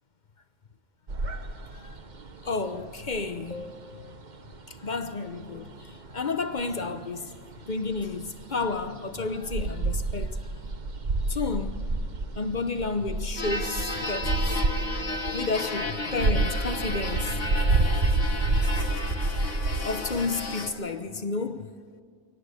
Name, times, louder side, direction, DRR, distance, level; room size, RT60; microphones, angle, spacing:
sound 1, 1.1-20.5, right 3 dB, 40° right, 1.1 m, -30 dB
voice 1, 2.4-4.2 4.7-7.4 7.7-10.4 11.3-11.8 12.3-14.6 15.3-17.4 19.8-21.7, left 3 dB, 45° left, 0.9 m, -31 dB
sound 2, 13.4-20.7, left 2 dB, 85° left, 2.1 m, -33 dB
23.5 x 19.0 x 8.3 m
omnidirectional pair, 1.2 m